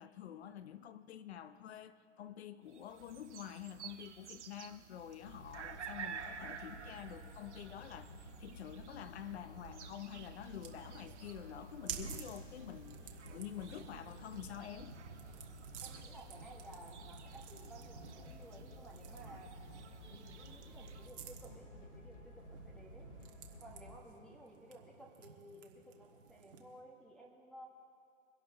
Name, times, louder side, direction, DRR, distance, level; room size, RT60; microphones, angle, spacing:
voice 1, 0.0-15.0 16.0-16.1, left 10 dB, 60° left, 12 dB, 0.9 m, -48 dB
sound 1, 2.7-21.1, right 7 dB, 65° right, 1.3 m, -53 dB
sound 2, 5.2-24.0, equal, 85° left, 2.9 m, -54 dB
sound 3, 10.2-26.8, right 7 dB, 45° right, 1.6 m, -53 dB
voice 2, 15.8-19.8 20.1-23.1 23.6-27.6, right 1 dB, ahead, -5 dB, 1.1 m, -56 dB
23.5 x 11.5 x 3.6 m, 2.4 s
hypercardioid pair, 140°, 37 cm